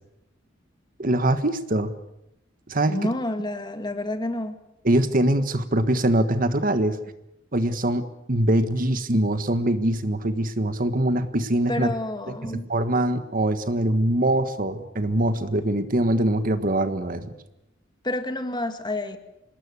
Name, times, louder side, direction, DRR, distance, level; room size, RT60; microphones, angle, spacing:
voice 1, 1.0-1.9 2.7-3.1 4.8-7.0 7.5-11.9 12.3-17.3, right 1 dB, 45° right, 10 dB, 1.5 m, -23 dB
voice 2, 2.9-4.6 11.7-12.7 18.0-19.2, left 1 dB, 20° left, 8 dB, 2.1 m, -29 dB
26.5 x 20.0 x 8.3 m, 0.87 s
head